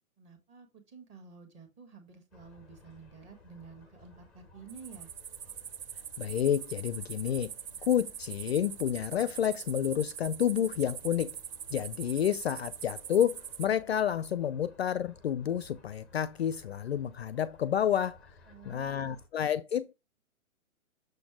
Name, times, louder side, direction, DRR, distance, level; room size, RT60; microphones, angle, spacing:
voice 1, 0.2-5.1 18.5-19.2, right 5 dB, 15° right, 1.4 m, -51 dB
sound 1, 2.3-19.3, left 3 dB, ahead, 0.6 m, -58 dB
sound 2, 4.7-13.7, right 8 dB, 40° right, 0.6 m, -43 dB
voice 2, 6.2-7.5 7.8-11.4 11.7-18.3 18.7-19.9, left 9 dB, 50° left, 0.5 m, -30 dB
6.6 x 4.2 x 4.9 m
hypercardioid pair, 155°, 42 cm